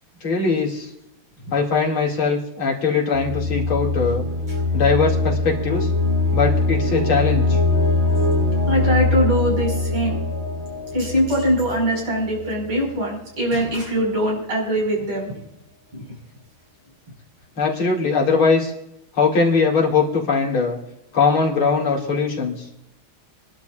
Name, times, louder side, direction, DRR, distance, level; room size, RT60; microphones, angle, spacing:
voice 1, 0.2-0.9 1.5-4.2 4.7-5.9 6.3-7.6 17.6-18.7 19.1-20.8 21.1-22.7, left 4 dB, 80° left, -2 dB, 3.4 m, -20 dB
sound 1, 3.1-12.9, left 2 dB, 20° right, 3.2 m, -22 dB
voice 2, 8.7-10.2 10.9-15.4 15.9-16.0, equal, 75° right, -2 dB, 6.6 m, -22 dB
27.0 x 11.5 x 2.5 m, 0.85 s
omnidirectional pair, 2.3 m